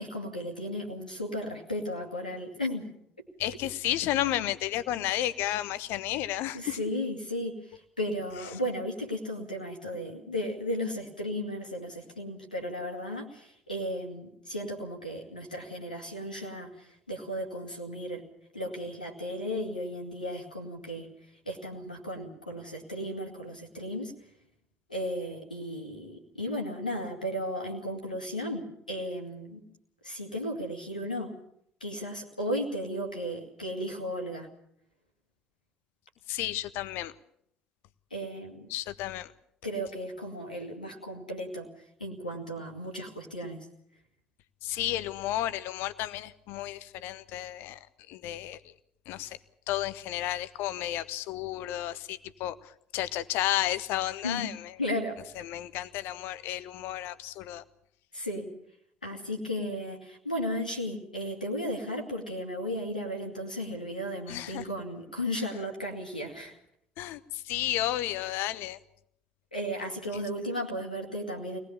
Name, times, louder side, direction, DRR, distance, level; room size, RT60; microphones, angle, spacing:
voice 1, 0.0-2.9 6.5-18.2 18.5-21.1 21.5-24.1 24.9-29.6 30.0-31.3 31.8-34.5 38.1-38.7 39.6-41.7 42.0-43.7 54.2-54.5 54.8-55.2 58.1-58.5 59.0-66.6 69.5-71.6, equal, 85° left, 2 dB, 2.1 m, -35 dB
voice 2, 3.4-6.8 36.3-37.1 38.7-39.3 44.6-47.8 48.1-48.6 49.1-49.4 49.7-52.5 52.9-54.6 55.5-57.6 64.3-64.6 67.0-67.2 67.5-68.8, left 14 dB, 60° left, 15 dB, 1.1 m, -32 dB
24.0 x 19.0 x 7.1 m, 0.72 s
figure-of-eight pair, 55°, 4 cm